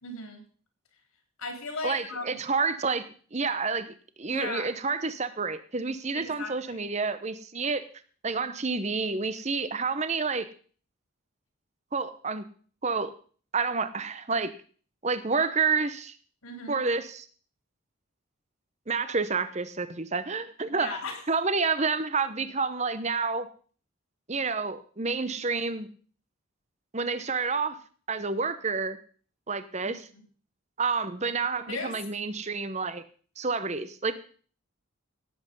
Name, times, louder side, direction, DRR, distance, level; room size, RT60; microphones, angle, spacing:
voice 1, 0.0-0.4 1.4-2.4 4.3-4.7 6.1-6.9 16.4-16.8 20.7-21.2 29.8-30.2 31.7-31.9, left 3 dB, 85° left, 3 dB, 4.0 m, -37 dB
voice 2, 1.8-3.0 3.3-7.8 8.2-10.5 11.9-12.4 12.8-13.1 13.5-14.5 15.0-16.1 16.7-17.3 18.9-21.0 21.3-23.5 24.3-25.9 26.9-27.8 28.1-29.0 29.5-30.1 30.8-33.0 33.4-34.1, right 4 dB, 30° right, 12 dB, 0.9 m, -29 dB
17.0 x 8.0 x 5.4 m, 0.43 s
head